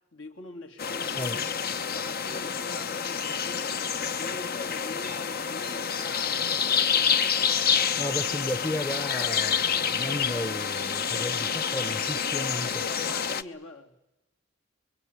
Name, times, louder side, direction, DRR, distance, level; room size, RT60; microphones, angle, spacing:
voice 1, 0.1-1.4 1.9-3.9 4.2-6.8 12.2-13.9, left 2 dB, 75° left, 3 dB, 3.2 m, -44 dB
sound 1, 0.8-13.4, left 7 dB, 50° left, 0.9 m, -28 dB
voice 2, 1.1-1.5 8.0-12.7, left 1 dB, 15° left, 10 dB, 0.9 m, -34 dB
25.5 x 23.0 x 9.5 m, 0.94 s
head